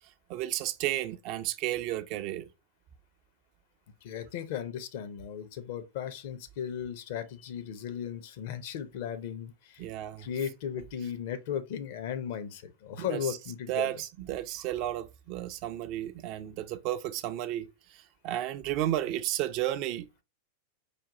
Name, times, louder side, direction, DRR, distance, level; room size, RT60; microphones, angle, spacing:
voice 1, 0.3-2.5 9.8-10.3 13.0-13.4 13.7-20.1, right 13 dB, 40° right, 0.4 m, -33 dB
voice 2, 4.0-9.9 10.2-14.1, left 9 dB, 50° left, 0.5 m, -36 dB
5.0 x 2.3 x 2.8 m
figure-of-eight pair, 90°, 0 cm